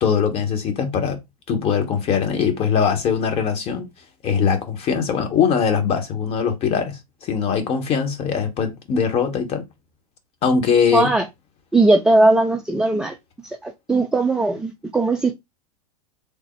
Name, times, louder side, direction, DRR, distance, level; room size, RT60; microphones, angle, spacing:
voice 1, 0.0-1.2 1.5-3.8 4.2-9.6 10.4-11.1, left 6 dB, 30° left, 1.0 m, -21 dB
voice 2, 10.9-11.3 11.7-13.2 13.6-15.3, right 2 dB, 5° right, 0.3 m, -18 dB
3.4 x 2.1 x 4.2 m
figure-of-eight pair, 95°, 19 cm